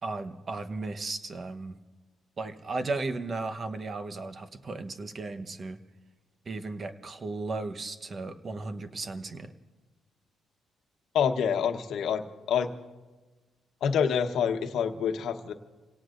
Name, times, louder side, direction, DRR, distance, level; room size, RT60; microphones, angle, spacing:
voice 1, 0.0-1.8 2.4-5.8 6.4-9.5, right 3 dB, 40° right, 9 dB, 1.1 m, -35 dB
voice 2, 11.1-12.7 13.8-15.5, left 7 dB, 75° left, 7 dB, 1.1 m, -27 dB
28.5 x 17.5 x 2.6 m, 1.2 s
cardioid pair, 90°, 0 cm